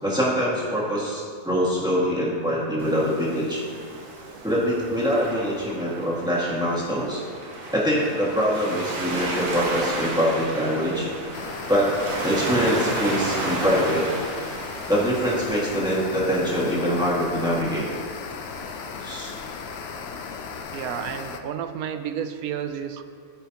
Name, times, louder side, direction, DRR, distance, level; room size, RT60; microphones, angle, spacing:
voice 1, 0.0-3.6 4.4-7.2 7.7-11.1 11.7-11.9 12.2-14.1 14.9-17.9 19.0-19.3, equal, 5° right, -7 dB, 1.8 m, -24 dB
Waves surf, 2.8-20.6, right 2 dB, 70° right, 1.5 m, -34 dB
sound 1, 11.3-21.4, left 6 dB, 60° left, 0.7 m, -36 dB
voice 2, 20.7-23.0, right 8 dB, 85° right, 8 dB, 1.1 m, -31 dB
15.0 x 5.7 x 2.9 m, 2.1 s
omnidirectional pair, 1.5 m